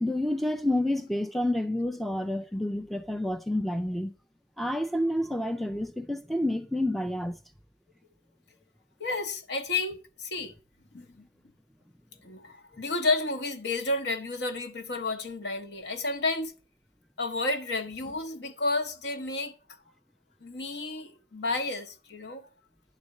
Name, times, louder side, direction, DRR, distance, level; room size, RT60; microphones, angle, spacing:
voice 1, 0.0-4.1 4.6-7.4, left 1 dB, ahead, 0.3 m, -29 dB
voice 2, 9.0-10.5 10.9-11.2 12.2-16.5 17.2-19.5 20.4-22.5, left 2 dB, 70° left, 0.9 m, -31 dB
11.0 x 4.2 x 6.4 m
head